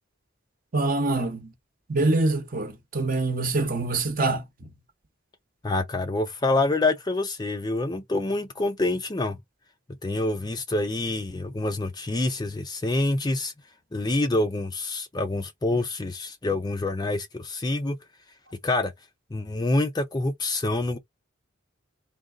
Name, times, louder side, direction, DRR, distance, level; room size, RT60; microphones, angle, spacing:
voice 1, 0.7-1.5 1.9-4.4, right 2 dB, 40° right, 0.9 m, -25 dB
voice 2, 5.6-9.4 10.0-13.5 13.9-18.0 18.6-18.9 19.3-21.0, left 2 dB, 20° left, 0.4 m, -26 dB
3.8 x 2.3 x 3.7 m
head